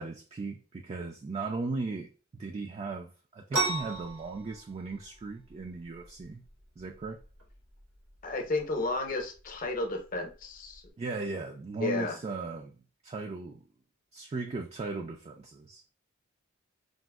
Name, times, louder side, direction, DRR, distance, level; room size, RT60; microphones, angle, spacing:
voice 1, 0.0-2.1 2.3-6.4 6.8-7.2 11.0-12.8 13.0-13.6 14.1-15.9, right 3 dB, 30° right, 0.3 m, -37 dB
sound 1, 3.5-10.9, right 3 dB, 85° right, 1.3 m, -38 dB
voice 2, 8.2-10.8 11.8-12.2, left 2 dB, 40° left, 0.7 m, -32 dB
5.0 x 2.0 x 2.2 m
head